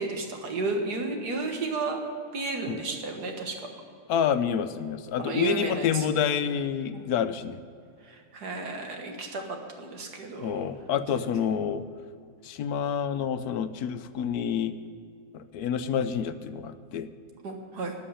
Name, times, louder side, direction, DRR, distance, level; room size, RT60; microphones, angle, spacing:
voice 1, 0.0-2.0 2.3-3.6 5.2-6.1 6.9-7.0 8.0-10.7 11.1-11.3 17.4-17.9, right 3 dB, 75° right, 3 dB, 2.1 m, -32 dB
voice 2, 4.1-7.6 10.4-11.8 12.4-14.7 15.3-17.1, left 8 dB, 75° left, 11 dB, 1.1 m, -28 dB
13.0 x 6.6 x 10.0 m, 2.3 s
omnidirectional pair, 1.7 m